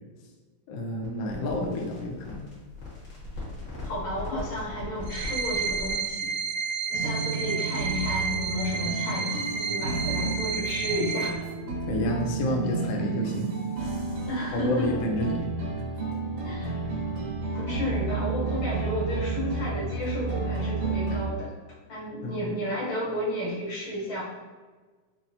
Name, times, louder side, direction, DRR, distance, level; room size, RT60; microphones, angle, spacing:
voice 1, 0.7-2.5 11.9-13.5 14.5-15.5 22.2-22.4, left 1 dB, 85° left, 0 dB, 1.3 m, -29 dB
sound 1, 1.0-6.1, left 2 dB, 50° left, 1.4 m, -39 dB
voice 2, 3.8-6.3 6.9-11.3 14.3-14.9 16.4-16.7 17.5-21.5 21.9-24.2, equal, 70° left, -8 dB, 2.6 m, -32 dB
sound 2, 5.0-11.3, right 5 dB, 70° right, 1.7 m, -31 dB
sound 3, 6.9-21.3, right 4 dB, 90° right, 2.5 m, -31 dB
5.7 x 2.0 x 2.6 m, 1.4 s
omnidirectional pair, 3.3 m